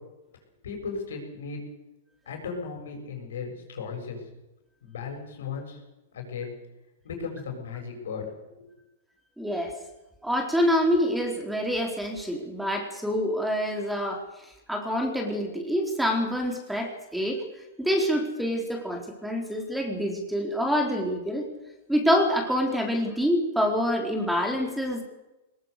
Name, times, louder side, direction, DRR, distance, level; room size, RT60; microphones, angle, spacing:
voice 1, 0.6-1.6 2.3-4.2 4.8-5.8 6.1-6.5 7.0-8.7, left 5 dB, 75° left, 3 dB, 7.3 m, -36 dB
voice 2, 9.4-9.7 10.2-14.3 14.7-17.4 17.8-21.5 21.9-25.0, equal, 5° right, 2 dB, 4.1 m, -26 dB
21.0 x 20.5 x 6.8 m, 0.98 s
hypercardioid pair, 110°, 0 cm